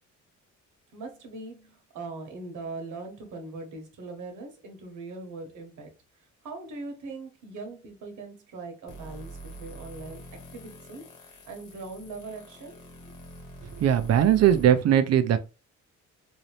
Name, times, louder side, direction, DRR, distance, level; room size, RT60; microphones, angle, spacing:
voice 1, 0.9-5.9 6.4-10.2 10.5-13.1, right 3 dB, 80° right, 1.2 m, -41 dB
sound 1, 8.9-14.6, right 2 dB, 85° left, 1.6 m, -45 dB
voice 2, 13.8-15.4, right 10 dB, 55° right, 0.6 m, -20 dB
3.9 x 2.8 x 3.2 m
cardioid pair, 90°, 30 cm